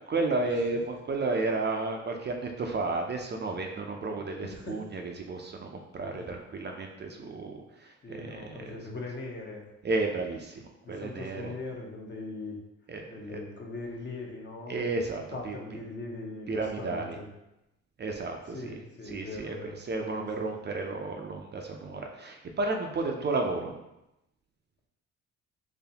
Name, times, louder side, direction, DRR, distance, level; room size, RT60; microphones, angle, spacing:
voice 1, 0.1-8.8 9.8-10.6 10.9-11.5 12.9-13.4 14.7-15.6 16.5-17.2 18.0-18.7 19.0-23.7, right 3 dB, 35° right, 2 dB, 0.5 m, -32 dB
voice 2, 4.1-4.8 6.1-6.3 8.0-9.6 10.8-12.5 13.1-14.9 15.3-17.2 18.5-19.7 20.0-20.3 23.1-23.2, left 3 dB, 35° left, 0 dB, 0.9 m, -40 dB
4.0 x 3.1 x 2.8 m, 0.91 s
cardioid pair, 90°, 30 cm